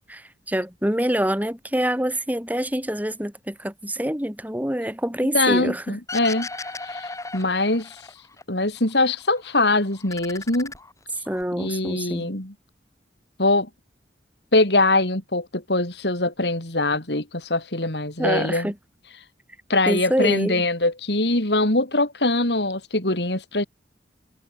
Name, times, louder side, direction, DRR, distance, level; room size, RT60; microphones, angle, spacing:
voice 1, 0.1-6.0 11.3-12.3 18.2-18.7 19.9-20.6, equal, 10° right, 4.6 m, -26 dB
voice 2, 5.3-6.5 6.9-7.9 8.5-10.7 11.6-12.5 13.4-13.7 14.5-18.7 19.7-23.7, left 2 dB, 70° left, 4.8 m, -22 dB
sound 1, 6.1-8.4 8.8-9.6 9.9-11.4, left 3 dB, 20° left, 5.3 m, -37 dB
head